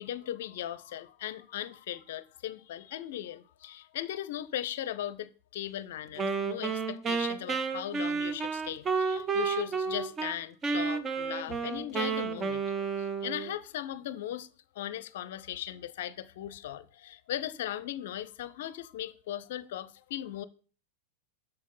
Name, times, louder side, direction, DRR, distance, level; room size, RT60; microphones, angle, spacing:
voice 1, 0.0-14.5 14.7-20.4, left 12 dB, 55° left, 0.6 m, -38 dB
Wind instrument woodwind instrument, 6.2-10.3 10.6-13.5, right 5 dB, 20° right, 0.8 m, -31 dB
6.5 x 6.3 x 5.5 m
figure-of-eight pair, 90°, 0 cm